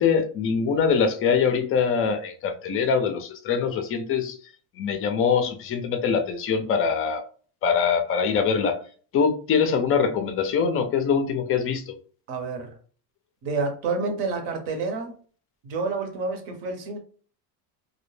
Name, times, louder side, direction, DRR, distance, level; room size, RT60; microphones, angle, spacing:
voice 1, 0.0-4.4 4.8-7.2 7.6-8.8 9.1-12.0, left 6 dB, 30° left, 0.4 m, -23 dB
voice 2, 12.3-12.8 13.4-15.2 15.6-17.0, right 4 dB, 60° right, 0.9 m, -29 dB
2.2 x 2.1 x 3.1 m
supercardioid pair, 115°, 49 cm